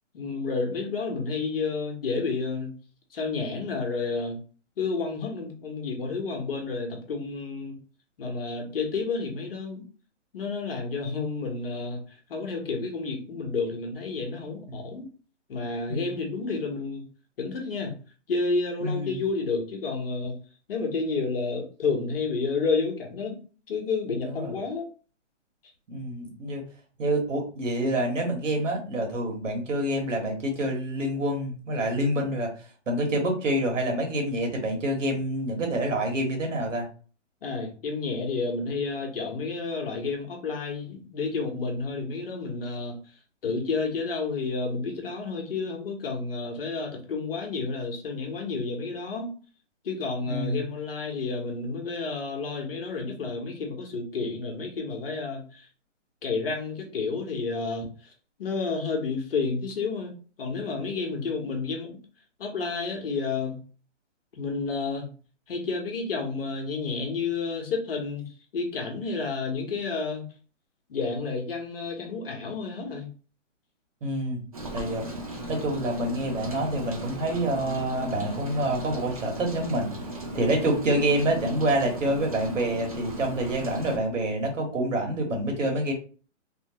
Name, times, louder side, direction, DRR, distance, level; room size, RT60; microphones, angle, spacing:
voice 1, 0.1-2.8 3.1-4.4 4.8-7.7 8.2-9.8 10.3-12.0 12.3-15.1 15.5-17.1 17.4-18.0 18.3-20.4 20.7-23.4 23.7-24.9 37.4-43.0 43.4-49.3 49.8-55.7 56.2-58.1 58.4-62.0 62.4-63.6 64.3-65.1 65.5-70.2 70.9-73.1, left 4 dB, 50° left, 2 dB, 0.9 m, -30 dB
voice 2, 18.8-19.2 24.2-24.5 25.9-26.6 27.0-32.5 32.9-36.9 50.3-50.6 74.0-74.4 74.7-75.1 75.5-79.9 80.3-85.9, right 1 dB, 80° right, 1 dB, 1.4 m, -27 dB
Rain, 74.5-84.0, right 1 dB, 30° right, 0.4 m, -37 dB
2.9 x 2.1 x 2.8 m, 0.38 s
hypercardioid pair, 165°, 37 cm